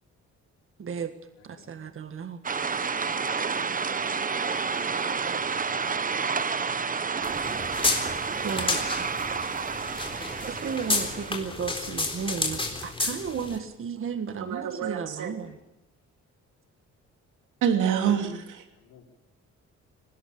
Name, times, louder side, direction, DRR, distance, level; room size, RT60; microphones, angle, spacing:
voice 1, 0.8-1.1 1.4-2.4 8.4-9.1 10.4-15.6, right 6 dB, 45° right, 9 dB, 1.7 m, -34 dB
voice 2, 1.4-1.9 4.7-5.8 18.7-19.0, left 6 dB, 90° left, -1 dB, 4.7 m, -58 dB
sound 1, 2.4-11.4, right 5 dB, 30° right, 1.0 m, -30 dB
sound 2, 7.2-13.6, left 3 dB, 15° left, 3.9 m, -31 dB
voice 3, 14.4-15.3 17.6-18.7, right 8 dB, 85° right, 5 dB, 2.8 m, -26 dB
20.0 x 18.0 x 8.5 m, 0.85 s
cardioid pair, 90°, 30 cm